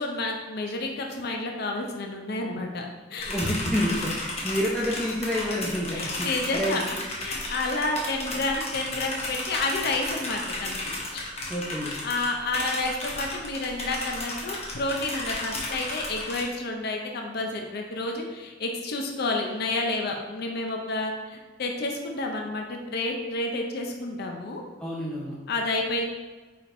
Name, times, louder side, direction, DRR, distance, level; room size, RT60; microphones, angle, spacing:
voice 1, 0.0-3.4 5.9-6.8 7.2-10.8 11.1-11.3 12.0-24.6 25.5-26.0, left 2 dB, 55° left, 2 dB, 0.5 m, -30 dB
sound 1, 3.2-16.4, left 2 dB, 30° left, 0.9 m, -34 dB
voice 2, 3.3-7.0 11.5-12.0 24.8-25.3, equal, 5° left, -6 dB, 0.5 m, -29 dB
4.9 x 4.2 x 2.6 m, 1.3 s
head